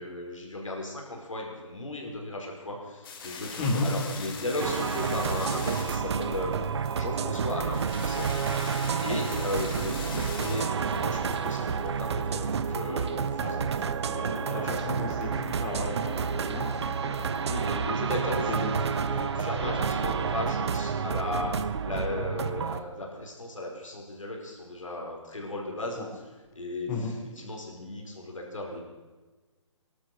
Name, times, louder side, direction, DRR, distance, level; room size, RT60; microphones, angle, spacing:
voice 1, 0.0-6.6 7.0-8.4 9.0-15.0 17.4-21.6 21.8-26.0 26.6-28.8, left 2 dB, 90° left, 0 dB, 5.0 m, -36 dB
sound 1, 3.0-12.5, left 5 dB, 45° left, 2.9 m, -42 dB
voice 2, 3.6-3.9 8.8-9.0 9.3-9.5 13.3-17.5 18.3-18.9 19.6-20.1 26.0-26.1 26.9-27.1, left 3 dB, 25° left, 1 dB, 3.9 m, -35 dB
sound 2, 4.6-22.8, right 6 dB, 60° right, 1.1 m, -30 dB
19.0 x 12.0 x 6.1 m, 1.3 s
figure-of-eight pair, 145°, 16 cm